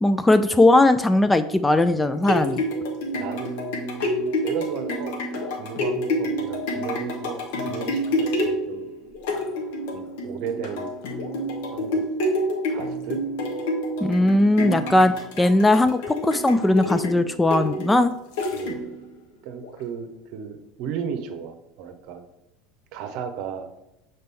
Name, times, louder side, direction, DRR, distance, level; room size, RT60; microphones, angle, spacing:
voice 1, 0.0-2.6 14.0-18.2, left 2 dB, 10° left, 11 dB, 0.3 m, -19 dB
sound 1, 2.0-19.1 19.6-19.7, left 1 dB, 60° left, 1.1 m, -28 dB
voice 2, 3.1-5.2 5.6-8.9 9.9-10.9 11.7-12.0 12.7-13.2 18.5-18.8 19.4-22.2 22.9-23.7, right 7 dB, 55° right, 7 dB, 0.7 m, -34 dB
6.6 x 4.3 x 3.3 m, 0.86 s
figure-of-eight pair, 70°, 0 cm